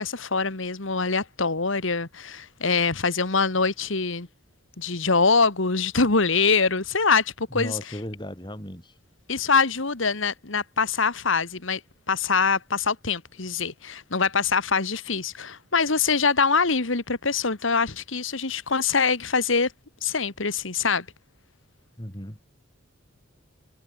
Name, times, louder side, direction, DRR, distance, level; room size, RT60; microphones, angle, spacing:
voice 1, 0.0-4.3 4.8-7.8 9.3-11.8 12.1-19.7 20.0-21.1, left 4 dB, 70° left, 1.8 m, -24 dB
voice 2, 7.5-9.0 22.0-22.4, equal, 20° left, 6.0 m, -35 dB
head